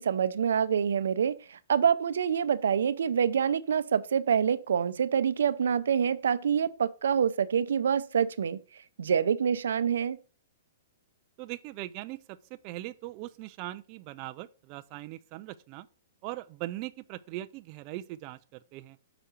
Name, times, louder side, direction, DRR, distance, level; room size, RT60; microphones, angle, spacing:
voice 1, 0.0-8.6 9.0-10.2, right 7 dB, 85° right, 0.5 m, -26 dB
voice 2, 11.4-12.4 12.6-15.9 16.2-19.0, right 16 dB, 30° right, 0.3 m, -40 dB
6.7 x 4.9 x 4.4 m
hypercardioid pair, 160°, 0 cm